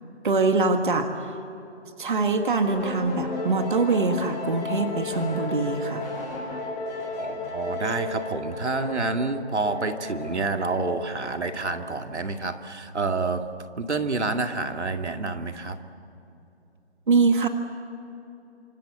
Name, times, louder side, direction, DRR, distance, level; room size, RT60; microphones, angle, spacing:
voice 1, 0.2-1.1 2.0-6.1 17.1-17.5, right 4 dB, 45° right, 6 dB, 1.8 m, -23 dB
sound 1, 2.7-12.1, left 3 dB, 10° left, 3.0 m, -34 dB
voice 2, 7.2-13.5 13.8-15.8, right 3 dB, 80° right, 6 dB, 2.3 m, -28 dB
29.0 x 25.5 x 8.1 m, 2.9 s
hypercardioid pair, 170°, 34 cm